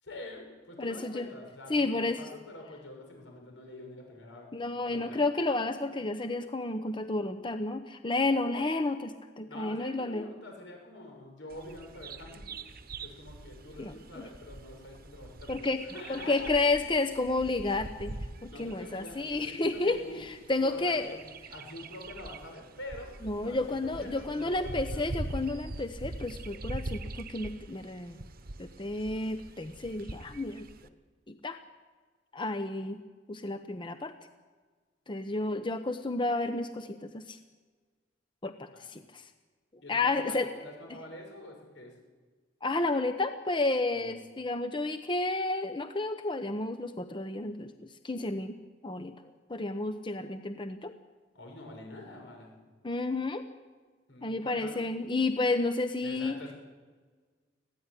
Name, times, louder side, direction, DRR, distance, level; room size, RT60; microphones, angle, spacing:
voice 1, 0.0-4.5 4.9-5.2 9.4-12.6 13.0-16.5 18.5-20.2 20.6-21.2 21.5-23.1 23.4-25.0 38.7-38.9 39.8-41.9 43.9-44.2 51.3-52.5 54.1-54.8 56.0-56.5, left 1 dB, 80° left, 2 dB, 6.5 m, -46 dB
voice 2, 0.8-1.3 1.7-2.2 4.5-10.2 13.8-14.2 15.5-15.8 16.1-18.1 18.4-21.2 23.2-28.2 28.6-30.7 31.3-31.6 32.3-33.0 33.3-34.1 35.1-37.4 38.4-39.2 39.9-40.5 42.6-47.7 48.0-48.6 48.8-49.1 49.5-50.9 52.8-53.4 54.2-56.4, left 2 dB, 25° left, 9 dB, 0.8 m, -31 dB
Bird vocalization bird call bird song, 11.5-30.9, right 2 dB, 55° right, 1.1 m, -43 dB
20.5 x 14.5 x 9.9 m, 1.4 s
head